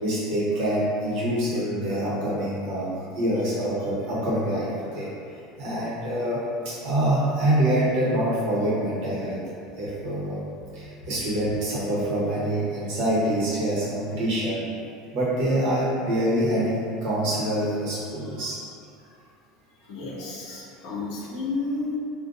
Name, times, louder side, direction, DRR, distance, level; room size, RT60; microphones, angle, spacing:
voice 1, 0.0-2.9 3.2-4.7 5.0-5.1 5.6-6.4 6.6-9.4 9.8-10.4 11.1-14.6 15.1-18.6 20.0-20.1, right 1 dB, 65° right, -7 dB, 0.9 m, -25 dB
voice 2, 19.9-22.0, left 3 dB, 65° left, -4 dB, 0.6 m, -31 dB
2.5 x 2.2 x 2.5 m, 2.4 s
supercardioid pair, 105°, 0 cm